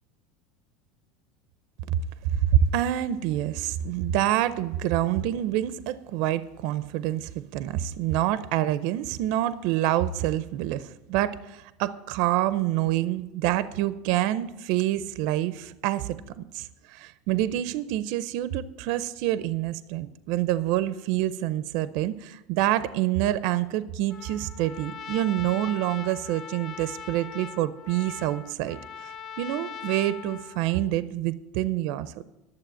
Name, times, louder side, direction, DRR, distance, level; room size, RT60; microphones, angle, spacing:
voice 1, 2.3-32.2, right 13 dB, 55° right, 15 dB, 0.5 m, -27 dB
Trumpet, 24.1-30.9, left 7 dB, 25° left, 0.5 m, -41 dB
12.0 x 7.3 x 7.5 m, 0.99 s
supercardioid pair, 165°, 0 cm